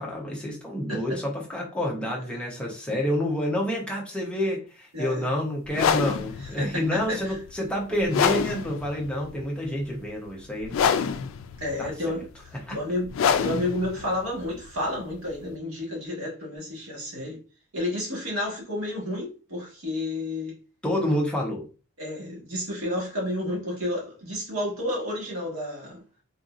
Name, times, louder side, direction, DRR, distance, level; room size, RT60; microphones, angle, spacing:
voice 1, 0.0-11.0 11.8-12.2 12.7-12.8 20.8-21.7, left 1 dB, 5° left, 0.7 m, -28 dB
voice 2, 0.9-1.2 4.9-5.3 6.6-7.4 11.6-12.3 12.7-13.1 13.4-17.4 17.7-20.6 22.0-26.0, left 1 dB, 85° right, 1.5 m, -31 dB
sound 1, 5.7-15.6, left 7 dB, 65° left, 0.3 m, -28 dB
3.8 x 2.6 x 2.5 m
head